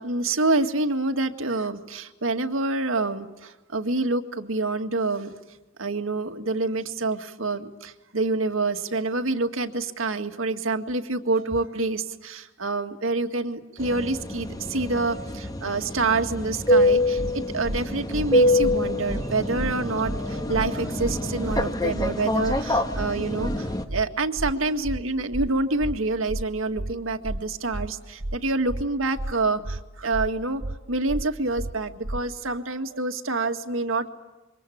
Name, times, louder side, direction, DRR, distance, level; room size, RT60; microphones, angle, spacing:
voice 1, 0.0-5.4 5.8-30.6 30.9-34.1, right 3 dB, 80° right, 6 dB, 2.0 m, -27 dB
sound 1, 13.8-23.8, left 1 dB, 20° left, 1.7 m, -25 dB
sound 2, 17.2-17.3 17.6-17.8 18.1-18.3 18.6-18.8 19.1-19.2 19.6-19.7 20.0-20.2 20.5-20.7 21.0-21.2 21.5-21.6 22.0-22.1 22.4-22.6 22.9-23.1 23.4-23.6 23.9-24.0 24.4-24.5 24.8-25.0 25.3-25.5 25.8-26.0 26.3-26.4 26.8-26.9 27.2-27.4 27.7-27.9 28.2-28.4 28.7-28.8 29.2-29.3 29.6-29.8 30.1-30.3 30.6-30.8 31.1-31.2 31.6-31.7 32.0-32.2, right 1 dB, 40° right, 1.0 m, -31 dB
28.0 x 24.5 x 8.6 m, 1.1 s
head